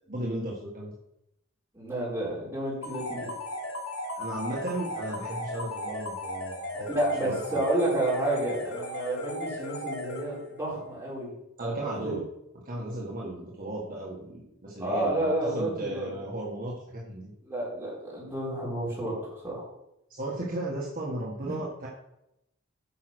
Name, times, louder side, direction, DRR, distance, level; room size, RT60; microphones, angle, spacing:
voice 1, 0.1-0.9 4.1-6.9 7.2-7.6 11.6-12.2 12.6-17.3 20.1-21.9, right 1 dB, 45° right, -4 dB, 1.6 m, -35 dB
voice 2, 1.7-3.3 6.9-11.3 11.6-12.2 14.8-16.1 17.4-19.7 21.4-21.6, right 1 dB, 10° right, -7 dB, 4.5 m, -30 dB
sound 1, 2.8-10.6, left 1 dB, 85° left, 3.4 m, -36 dB
9.5 x 5.7 x 6.3 m, 0.84 s
head